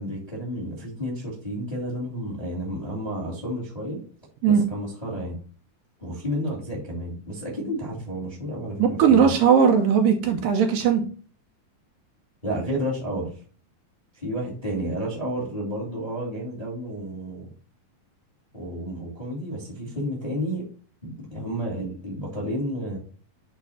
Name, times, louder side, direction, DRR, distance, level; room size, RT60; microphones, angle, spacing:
voice 1, 0.0-4.0 4.4-5.4 6.0-9.3 12.4-13.3 14.1-17.5 18.5-20.7 21.0-23.0, equal, 15° left, -3 dB, 1.5 m, -31 dB
voice 2, 8.8-11.0, right 7 dB, 75° right, 5 dB, 2.2 m, -18 dB
8.3 x 3.3 x 4.1 m, 0.40 s
omnidirectional pair, 4.2 m